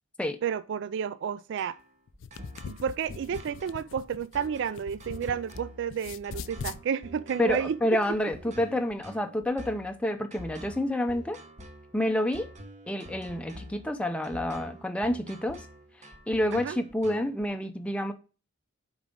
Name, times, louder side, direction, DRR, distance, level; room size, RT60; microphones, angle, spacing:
voice 1, 0.4-1.8 2.7-8.0 16.5-16.8, right 7 dB, 60° right, 0.3 m, -31 dB
sound 1, 1.6-17.4, equal, 35° right, 1.0 m, -47 dB
sound 2, 2.1-5.6 5.9-6.8, left 6 dB, 65° left, 0.4 m, -41 dB
voice 2, 7.4-11.4 11.9-12.5 12.9-15.6 16.3-18.1, left 1 dB, 5° left, 0.5 m, -28 dB
7.4 x 4.8 x 3.7 m
head